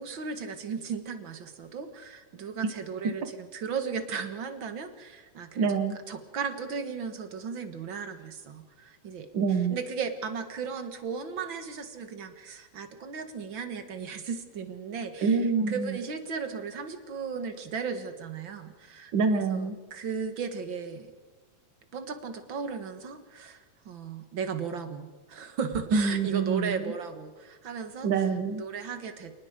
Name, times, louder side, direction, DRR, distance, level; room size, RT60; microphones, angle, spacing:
voice 1, 0.0-5.7 6.1-9.3 9.7-15.4 15.7-21.1 21.9-28.1 28.6-29.3, right 6 dB, 45° right, 8 dB, 1.7 m, -36 dB
voice 2, 5.6-5.9 9.3-9.8 15.2-16.0 19.1-19.7 25.9-26.9 28.0-28.6, right 5 dB, 75° right, 8 dB, 1.0 m, -26 dB
28.5 x 19.5 x 5.2 m, 1.3 s
omnidirectional pair, 4.1 m